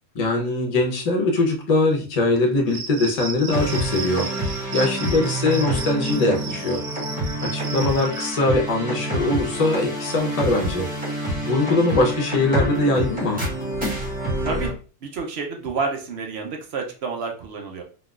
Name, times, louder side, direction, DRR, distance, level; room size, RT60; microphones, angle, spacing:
voice 1, 0.1-4.3 4.7-6.8 7.4-10.9 11.4-13.5, left 2 dB, 40° left, 1 dB, 0.6 m, -22 dB
Cricket, 2.7-8.3, right 4 dB, 85° right, 1.1 m, -34 dB
sound 1, 3.5-14.7, right 1 dB, 5° right, 1.2 m, -27 dB
voice 2, 15.0-17.8, right 4 dB, 60° right, 2 dB, 0.8 m, -29 dB
3.7 x 2.3 x 2.3 m, 0.37 s
omnidirectional pair, 1.3 m